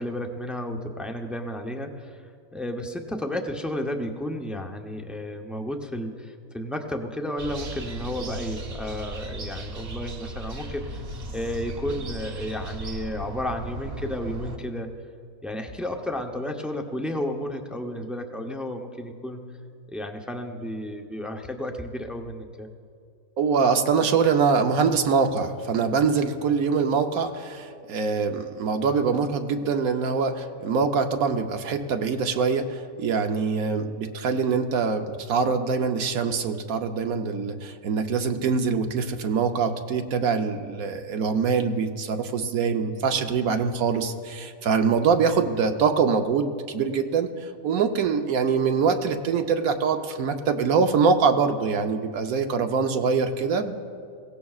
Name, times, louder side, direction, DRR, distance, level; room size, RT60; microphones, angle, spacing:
voice 1, 0.0-11.0 11.3-14.9 15.4-19.4 19.9-22.7, left 1 dB, ahead, 3 dB, 0.4 m, -32 dB
sound 1, 7.4-14.6, right 2 dB, 50° right, 1.1 m, -36 dB
voice 2, 23.4-53.8, right 5 dB, 85° right, 6 dB, 1.3 m, -24 dB
22.0 x 17.0 x 2.4 m, 2.3 s
omnidirectional pair, 1.4 m